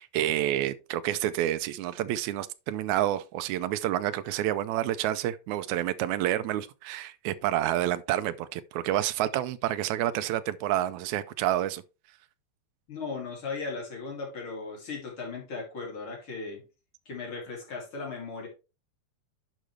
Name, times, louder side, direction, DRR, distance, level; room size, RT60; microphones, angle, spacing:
voice 1, 0.0-11.8, right 13 dB, 90° right, 2.0 m, -29 dB
voice 2, 12.9-16.6 17.1-18.5, left 4 dB, 45° left, 3.4 m, -37 dB
10.5 x 5.0 x 3.2 m
omnidirectional pair, 3.3 m